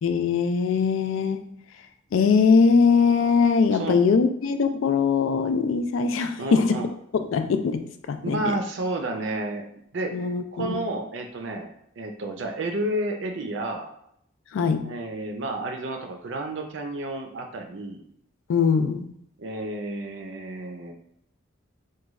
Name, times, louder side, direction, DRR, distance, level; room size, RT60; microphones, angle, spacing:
voice 1, 0.0-1.6 2.1-6.9 7.1-8.5 10.1-10.8 14.5-14.9 18.5-19.1, left 5 dB, 70° left, 9 dB, 0.3 m, -22 dB
voice 2, 6.4-6.9 8.2-10.1 10.5-11.7 12.0-13.9 14.8-18.0 19.4-20.9, right 2 dB, 60° right, 4 dB, 0.5 m, -31 dB
3.1 x 2.2 x 3.5 m, 0.73 s
head